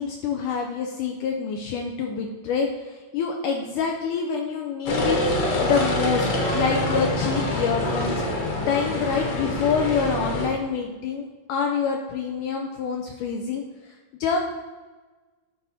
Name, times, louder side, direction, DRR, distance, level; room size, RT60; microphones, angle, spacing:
voice 1, 0.0-5.2 5.5-6.3 6.5-8.2 8.6-13.6 14.2-14.4, left 6 dB, 90° left, 2 dB, 1.8 m, -26 dB
sound 1, 4.9-10.5, left 1 dB, 55° left, 1.8 m, -25 dB
11.5 x 4.2 x 4.1 m, 1.3 s
omnidirectional pair, 4.3 m